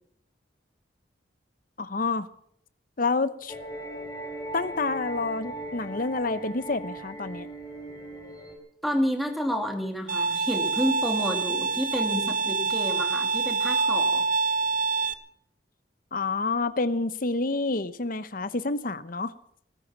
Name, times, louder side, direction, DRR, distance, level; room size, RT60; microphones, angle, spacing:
voice 1, 1.8-2.3 3.0-3.5 4.5-7.5 16.1-19.3, left 3 dB, 50° left, 14 dB, 1.0 m, -28 dB
sound 1, 3.5-8.6, right 1 dB, 20° left, 3.6 m, -38 dB
voice 2, 8.8-14.3, equal, ahead, 3 dB, 2.7 m, -29 dB
Bowed string instrument, 10.1-15.1, right 4 dB, 50° right, 1.0 m, -26 dB
19.5 x 12.0 x 6.0 m, 0.68 s
head